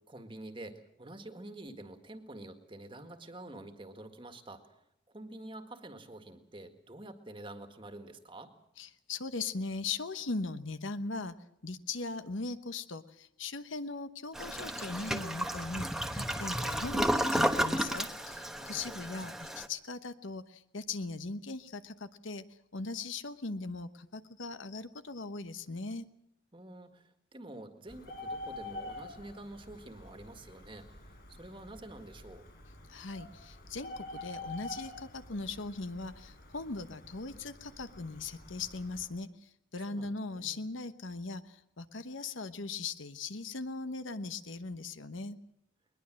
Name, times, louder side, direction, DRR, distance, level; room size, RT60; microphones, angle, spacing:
voice 1, 0.1-4.8 5.1-8.5 18.5-19.0 26.5-32.4 39.9-40.6, right 1 dB, 25° right, 7 dB, 1.8 m, -48 dB
voice 2, 8.8-11.3 11.6-15.9 16.1-22.4 22.7-26.1 32.9-45.4, left 3 dB, 75° left, 11 dB, 1.1 m, -39 dB
Toilet flush, 14.3-19.7, equal, ahead, 1.1 m, -32 dB
Bird, 27.9-39.1, left 2 dB, 50° left, 6.9 m, -47 dB
21.5 x 21.0 x 7.6 m, 0.77 s
head